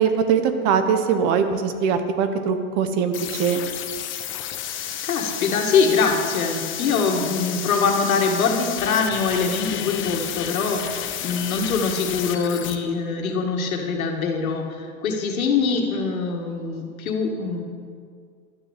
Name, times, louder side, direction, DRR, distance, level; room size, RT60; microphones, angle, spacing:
voice 1, 0.0-3.6, right 6 dB, 45° right, 8 dB, 1.1 m, -21 dB
sound 1, 3.1-12.8, left 10 dB, 30° left, 0.9 m, -31 dB
voice 2, 5.0-17.6, left 5 dB, 90° left, 2 dB, 1.9 m, -23 dB
11.5 x 6.3 x 8.2 m, 2.1 s
hypercardioid pair, 120°, 41 cm